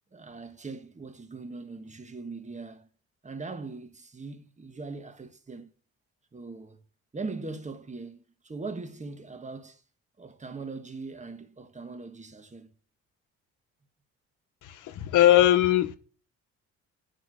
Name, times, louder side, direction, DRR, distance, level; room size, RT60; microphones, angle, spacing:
voice 1, 0.1-2.9 3.2-5.7 6.3-6.8 7.1-9.8 10.2-12.7, right 3 dB, 25° right, 1.5 m, -40 dB
voice 2, 14.6-16.0, left 13 dB, 85° left, 1.0 m, -20 dB
9.6 x 4.6 x 6.4 m
cardioid pair, 90°, 30 cm